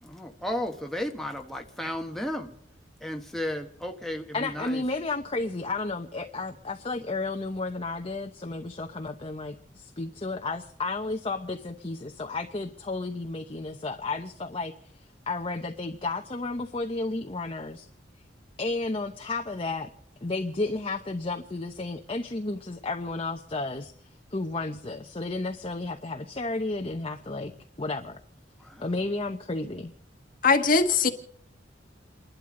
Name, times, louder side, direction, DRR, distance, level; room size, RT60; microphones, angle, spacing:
voice 1, 0.0-2.5 3.0-4.8 28.6-28.9, left 1 dB, ahead, 1.2 m, -34 dB
voice 2, 4.3-14.7 15.3-17.9 18.6-19.9 20.2-23.9 24.3-27.5 27.8-28.2 28.8-29.9, left 3 dB, 30° left, 0.9 m, -32 dB
voice 3, 30.4-31.1, left 4 dB, 50° left, 1.3 m, -20 dB
29.5 x 12.0 x 3.9 m
head